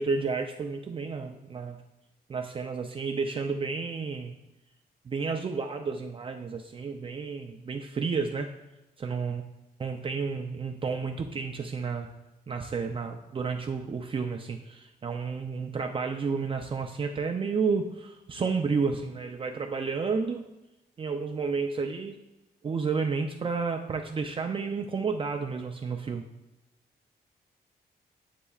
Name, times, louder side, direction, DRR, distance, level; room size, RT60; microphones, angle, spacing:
voice 1, 0.0-1.8 2.3-4.3 5.1-8.5 9.0-9.4 9.8-12.1 12.5-20.4 21.0-22.2 22.6-26.2, right 5 dB, 30° right, 3 dB, 0.5 m, -31 dB
9.9 x 7.6 x 2.4 m, 0.95 s
wide cardioid pair, 130°, 17 cm